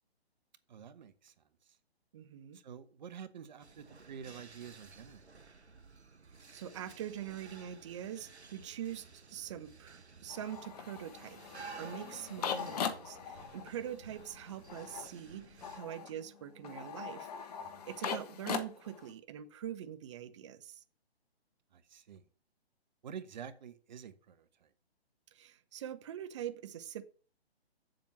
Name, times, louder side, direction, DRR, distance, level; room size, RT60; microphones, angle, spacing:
voice 1, 0.7-1.8 2.5-5.3 17.6-17.9 21.7-22.3 23.0-24.7, right 8 dB, 45° right, 1.1 m, -49 dB
voice 2, 2.1-2.6 6.5-17.6 17.9-20.8 25.3-27.0, right 10 dB, 30° right, 0.7 m, -44 dB
sound 1, 3.6-15.8, right 4 dB, 85° right, 1.1 m, -54 dB
sound 2, 10.3-19.1, left 7 dB, 35° left, 1.2 m, -41 dB
7.7 x 7.1 x 5.9 m
figure-of-eight pair, 135°, 32 cm